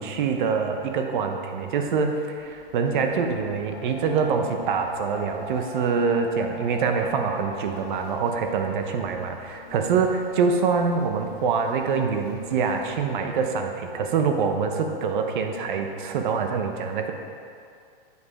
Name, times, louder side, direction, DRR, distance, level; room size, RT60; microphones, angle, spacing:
voice 1, 0.0-17.1, right 5 dB, 55° right, 5 dB, 0.9 m, -25 dB
sound 1, 2.4-13.5, left 2 dB, 30° left, 0.9 m, -43 dB
8.1 x 4.9 x 4.8 m, 2.3 s
hypercardioid pair, 140°, 29 cm